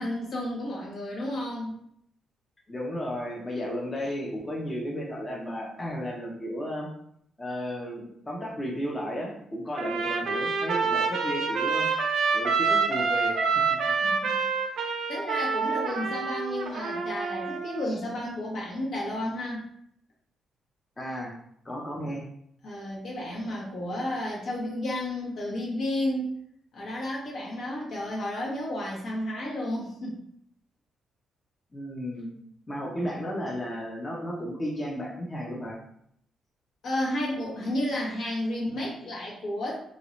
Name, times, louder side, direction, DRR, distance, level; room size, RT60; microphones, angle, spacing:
voice 1, 0.0-1.7 14.0-14.6 15.1-19.6 22.6-26.3 26.7-30.2 36.8-39.8, left 1 dB, 65° left, -4 dB, 1.1 m, -32 dB
voice 2, 2.7-6.9 7.4-11.9 12.3-13.9 17.9-18.0 21.0-21.3 21.6-22.2 31.7-32.3 32.7-35.8, equal, 20° left, -3 dB, 0.6 m, -34 dB
Trumpet, 9.8-17.9, right 5 dB, 75° right, 0.5 m, -27 dB
2.9 x 2.6 x 3.1 m, 0.70 s
cardioid pair, 130°, 0 cm